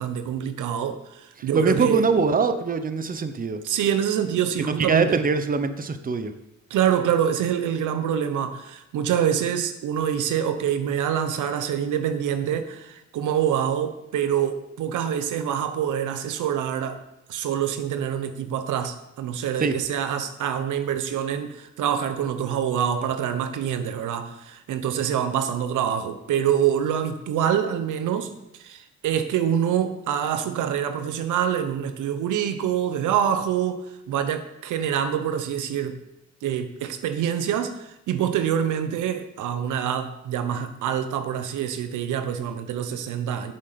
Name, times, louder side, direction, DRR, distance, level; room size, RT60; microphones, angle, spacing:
voice 1, 0.0-2.0 3.6-5.2 6.7-17.0 17.3-28.3 28.6-36.0 36.4-43.5, right 9 dB, 80° right, 9 dB, 1.1 m, -26 dB
voice 2, 1.5-3.6 4.6-6.3 19.6-19.8, right 4 dB, 30° right, 9 dB, 0.9 m, -23 dB
8.3 x 7.4 x 6.9 m, 0.86 s
cardioid pair, 90°, 30 cm